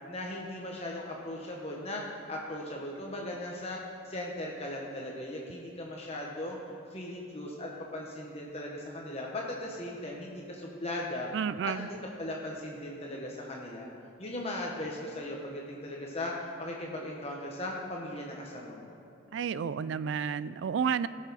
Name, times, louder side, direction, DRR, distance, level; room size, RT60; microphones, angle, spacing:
voice 1, 0.1-3.8 4.0-6.6 6.9-11.3 11.6-13.9 14.2-19.0, left 1 dB, 30° left, -2 dB, 1.1 m, -38 dB
voice 2, 11.3-11.9 19.3-21.1, right 7 dB, 65° right, 16 dB, 0.3 m, -31 dB
18.0 x 6.5 x 4.1 m, 2.6 s
head